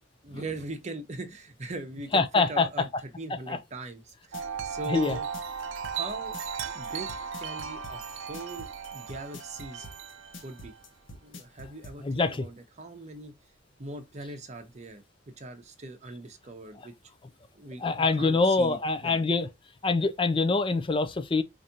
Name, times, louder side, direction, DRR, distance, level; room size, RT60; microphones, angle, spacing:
voice 1, 0.2-2.9 3.2-5.3 5.9-6.4 6.7-7.1 7.4-8.0 8.3-9.9 10.4-10.7 11.1-13.3 13.8-15.0 15.4-16.9 17.5-19.2, right 2 dB, 40° right, 0.8 m, -40 dB
voice 2, 2.1-2.7 3.5-3.6 4.9-5.2 12.0-12.4 17.8-19.5 19.8-21.4, left 3 dB, 25° left, 0.4 m, -25 dB
sound 1, 4.1-12.0, left 1 dB, 85° left, 0.9 m, -45 dB
Wind chime, 4.3-10.8, right 6 dB, 85° right, 0.5 m, -37 dB
4.8 x 2.6 x 2.8 m
head